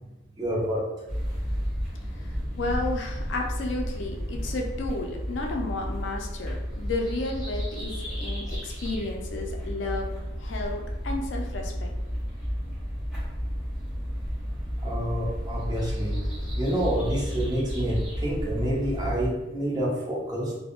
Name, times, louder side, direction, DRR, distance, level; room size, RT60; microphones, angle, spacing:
voice 1, 0.4-0.8 14.8-20.5, equal, 20° right, -5 dB, 0.7 m, -28 dB
sound 1, 1.1-19.3, equal, ahead, 1.4 m, -32 dB
voice 2, 2.6-10.1 10.4-11.9, left 2 dB, 75° left, 1 dB, 0.4 m, -32 dB
3.5 x 2.1 x 2.3 m, 1.0 s
head